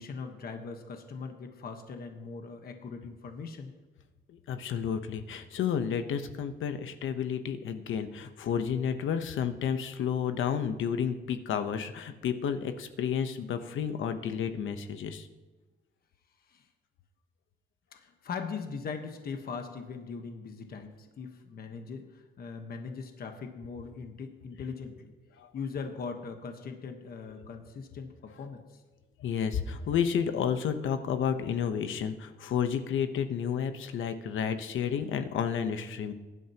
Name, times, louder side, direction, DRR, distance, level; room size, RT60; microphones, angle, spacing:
voice 1, 0.0-3.7 16.5-16.7 17.9-25.1 25.5-28.8, left 5 dB, 50° left, 5 dB, 1.3 m, -40 dB
voice 2, 4.3-15.3 25.4-25.5 29.2-36.1, left 7 dB, 80° left, 9 dB, 1.0 m, -31 dB
21.5 x 11.0 x 3.0 m, 1.3 s
wide cardioid pair, 160°, 20 cm